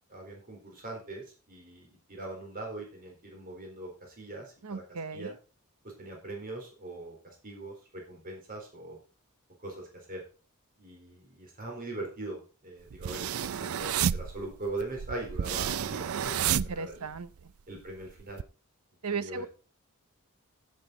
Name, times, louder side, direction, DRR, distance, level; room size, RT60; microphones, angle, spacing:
voice 1, 0.1-4.8 5.1-5.4 6.0-9.0 9.6-10.2 10.8-17.0 17.7-18.4 19.1-19.5, right 2 dB, 40° right, 0 dB, 4.0 m, -41 dB
voice 2, 4.6-5.4 16.5-17.5 19.0-19.5, right 5 dB, 90° right, 14 dB, 0.9 m, -36 dB
sound 1, 12.9-17.4 17.8-18.4, right 9 dB, 70° right, 0.4 m, -31 dB
15.5 x 7.9 x 4.0 m, 0.35 s
head